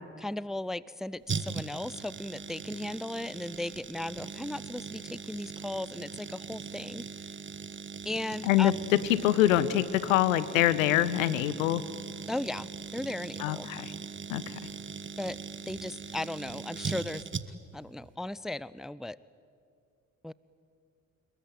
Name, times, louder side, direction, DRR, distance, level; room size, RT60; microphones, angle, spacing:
voice 1, 0.2-7.0 8.0-8.7 12.3-13.7 15.2-15.4 15.7-17.2 17.7-19.2 20.2-20.3, left 1 dB, ahead, 20 dB, 0.6 m, -36 dB
sound 1, 1.3-17.8 18.0-18.1, right 5 dB, 30° right, 1.4 m, -40 dB
voice 2, 8.4-11.8 13.4-13.9 14.3-14.6, left 13 dB, 75° left, 17 dB, 1.1 m, -25 dB
27.0 x 22.5 x 9.2 m, 2.3 s
figure-of-eight pair, 45°, 40 cm